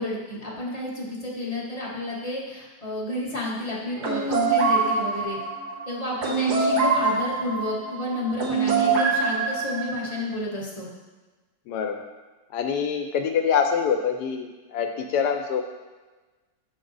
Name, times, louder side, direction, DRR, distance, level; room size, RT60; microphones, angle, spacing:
voice 1, 0.0-5.4 5.9-10.9, left 1 dB, 30° left, -5 dB, 0.8 m, -31 dB
sound 1, 4.0-10.2, right 4 dB, 65° right, 1.5 m, -24 dB
voice 2, 11.7-12.1 12.5-15.6, left 7 dB, 75° left, 5 dB, 1.1 m, -25 dB
6.0 x 4.7 x 3.9 m, 1.2 s
omnidirectional pair, 1.9 m